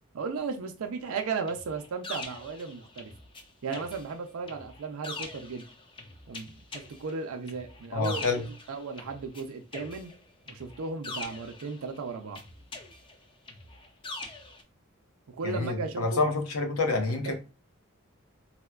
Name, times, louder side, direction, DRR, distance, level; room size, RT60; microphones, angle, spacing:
voice 1, 0.1-3.1 3.6-5.6 6.3-8.2 8.7-10.1 10.5-12.4 15.3-16.3 17.2-17.3, right 4 dB, 75° right, 0.4 m, -35 dB
sound 1, 1.5-3.4 3.7-9.4 9.7-12.0 12.4-14.6, left 3 dB, 25° left, 0.5 m, -43 dB
voice 2, 7.9-8.4 15.4-17.3, left 3 dB, 85° left, 0.8 m, -28 dB
4.1 x 2.1 x 2.3 m
head